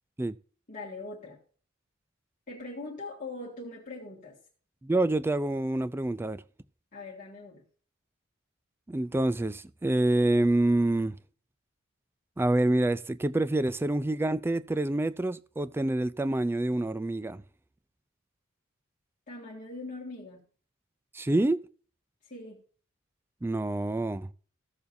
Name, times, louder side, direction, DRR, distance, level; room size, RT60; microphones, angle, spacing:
voice 1, 0.7-1.4 2.5-4.4 6.9-7.6 19.3-20.4 22.2-22.6, left 2 dB, 40° left, 1.7 m, -41 dB
voice 2, 4.8-6.4 8.9-11.1 12.4-17.4 21.1-21.6 23.4-24.3, right 1 dB, 10° right, 0.3 m, -27 dB
15.5 x 6.9 x 2.6 m
head